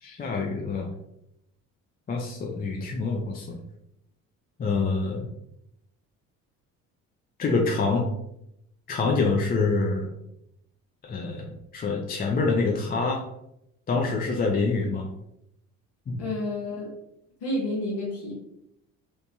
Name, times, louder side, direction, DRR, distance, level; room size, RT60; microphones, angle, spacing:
voice 1, 0.0-0.9 2.1-3.6 4.6-5.3 7.4-8.1 8.9-10.1 11.0-13.2 13.9-15.1 16.1-16.2, left 4 dB, 25° left, 0 dB, 0.4 m, -26 dB
voice 2, 16.2-16.9 17.4-18.3, left 1 dB, 70° left, -4 dB, 0.9 m, -30 dB
2.9 x 2.1 x 2.7 m, 0.80 s
hypercardioid pair, 60°, 39 cm